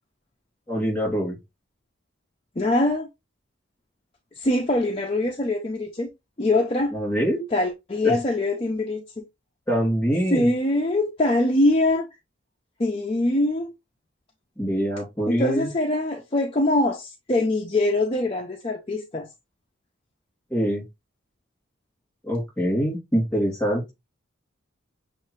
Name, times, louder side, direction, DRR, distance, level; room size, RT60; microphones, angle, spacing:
voice 1, 0.7-1.4 6.9-7.4 8.0-8.2 9.7-10.5 14.6-15.7 20.5-20.8 22.2-23.9, equal, 5° left, 3.0 m, -24 dB
voice 2, 2.6-3.1 4.4-6.1 6.4-6.9 7.5-9.2 10.3-12.1 12.8-13.7 15.3-19.3, left 1 dB, 30° left, 0.5 m, -23 dB
6.3 x 2.5 x 3.2 m
head